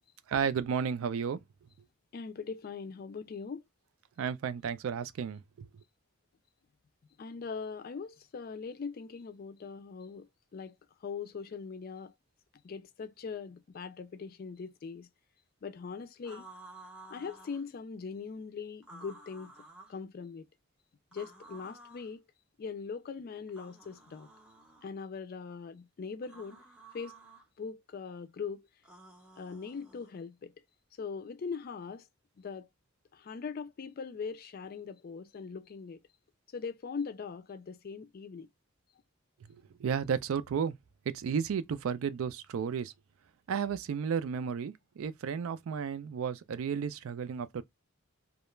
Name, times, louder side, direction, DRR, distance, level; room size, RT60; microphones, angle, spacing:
voice 1, 0.3-1.4 4.2-5.7 39.5-40.8 41.1-42.9 43.5-47.6, right 7 dB, 70° right, 0.3 m, -33 dB
voice 2, 2.1-3.6 7.2-10.3 10.5-10.7 11.0-12.1 12.6-15.1 15.6-16.4 17.1-19.5 19.9-20.5 21.1-22.2 22.6-24.3 24.8-26.6 26.9-27.2 27.6-28.7 29.4-30.5 31.0-32.0 32.4-32.7 33.1-36.0 36.5-38.5, left 5 dB, 45° left, 0.3 m, -41 dB
sound 1, 16.2-17.6 18.8-20.0 21.1-22.1 23.5-24.9 26.2-27.4 28.8-30.1, right 2 dB, 5° right, 0.5 m, -53 dB
2.3 x 2.0 x 3.0 m
head